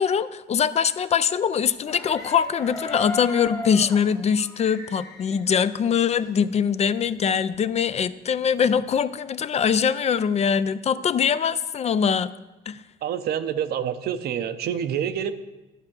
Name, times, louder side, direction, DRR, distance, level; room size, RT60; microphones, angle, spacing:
voice 1, 0.0-12.3 12.7-12.8, left 7 dB, 40° left, 15 dB, 0.4 m, -23 dB
sound 1, 1.9-6.5 6.8-6.9 7.1-8.9, left 3 dB, 20° left, 1.3 m, -36 dB
voice 2, 13.0-15.3, right 9 dB, 70° right, 10 dB, 0.6 m, -27 dB
11.0 x 4.4 x 7.4 m, 1.1 s
cardioid pair, 95°, 17 cm